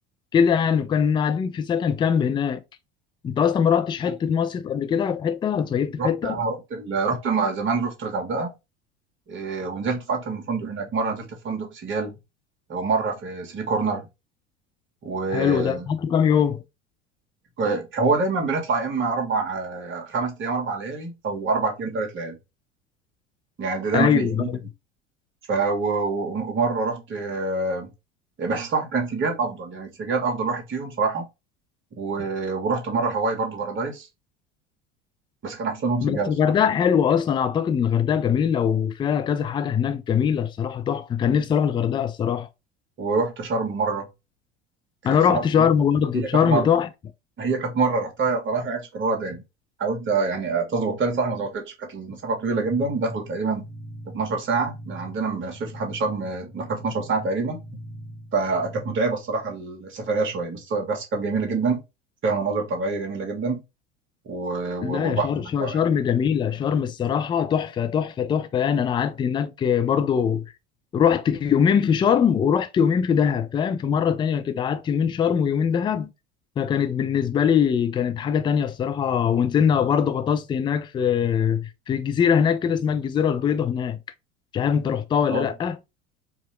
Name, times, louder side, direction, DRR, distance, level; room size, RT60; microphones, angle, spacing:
voice 1, 0.3-2.6 3.2-6.4 15.3-16.6 23.9-24.4 36.0-42.5 45.0-46.9 64.8-70.4 70.9-76.1 76.6-84.0 84.5-85.8, left 7 dB, 15° left, 0.4 m, -22 dB
voice 2, 6.0-8.5 9.3-12.1 12.7-14.1 15.0-15.9 17.6-22.4 23.6-24.5 25.5-27.9 28.4-31.3 32.0-34.1 35.4-36.5 43.0-44.1 45.0-45.7 46.1-46.7 47.4-49.4 49.8-53.6 54.1-57.6 58.3-61.8 62.2-63.6 64.3-65.8 85.3-85.5, right 4 dB, 35° right, 1.7 m, -26 dB
sound 1, 52.5-59.0, right 1 dB, 10° right, 1.3 m, -41 dB
4.7 x 2.9 x 3.1 m
figure-of-eight pair, 70°, 36 cm